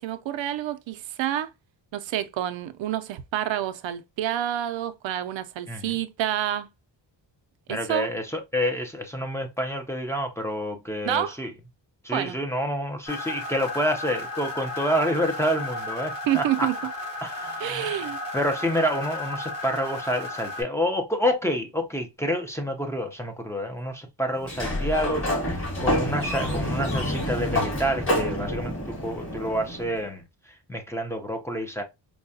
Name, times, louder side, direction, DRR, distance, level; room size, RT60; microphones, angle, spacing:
voice 1, 0.0-1.5 1.9-6.7 7.7-8.1 11.0-11.4 12.1-12.4 16.3-16.7 17.6-18.2, right 12 dB, 85° right, 0.6 m, -28 dB
voice 2, 7.7-11.5 12.0-16.7 17.2-31.8, equal, 5° left, 0.6 m, -28 dB
sound 1, 13.0-20.6, left 2 dB, 50° left, 2.0 m, -34 dB
Sliding door, 24.4-30.1, left 1 dB, 30° left, 1.8 m, -28 dB
4.6 x 2.2 x 2.6 m
wide cardioid pair, 140°, 44 cm